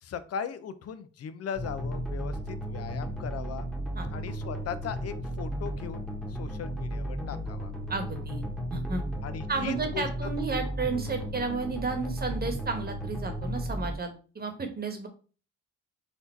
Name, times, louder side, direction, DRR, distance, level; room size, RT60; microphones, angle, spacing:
voice 1, 0.0-3.7 4.1-7.7 9.2-10.1, left 7 dB, 55° left, 12 dB, 0.6 m, -38 dB
sound 1, 1.6-14.0, equal, ahead, 1.2 m, -34 dB
voice 2, 7.9-8.4 8.7-9.0 9.5-14.1 14.3-15.1, right 4 dB, 30° right, 5 dB, 1.2 m, -32 dB
4.2 x 2.8 x 4.5 m, 0.37 s
cardioid pair, 90°, 30 cm